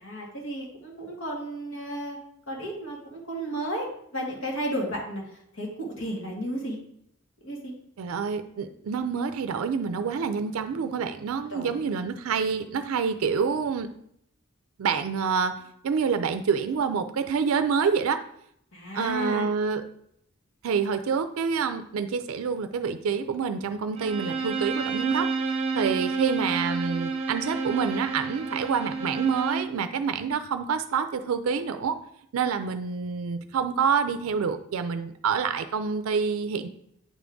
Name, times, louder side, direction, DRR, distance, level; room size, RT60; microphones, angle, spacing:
voice 1, 0.0-2.2 2.5-5.2 5.5-6.8 7.4-7.7 11.5-11.7 18.7-19.4, right 1 dB, 80° left, -2 dB, 1.8 m, -33 dB
voice 2, 8.0-13.9 14.8-18.2 18.9-19.8 20.6-25.3 25.7-32.0 32.3-36.7, right 6 dB, 90° right, 9 dB, 0.4 m, -27 dB
Bowed string instrument, 24.0-29.7, right 4 dB, 30° right, 0.8 m, -30 dB
8.7 x 3.5 x 3.8 m, 0.72 s
head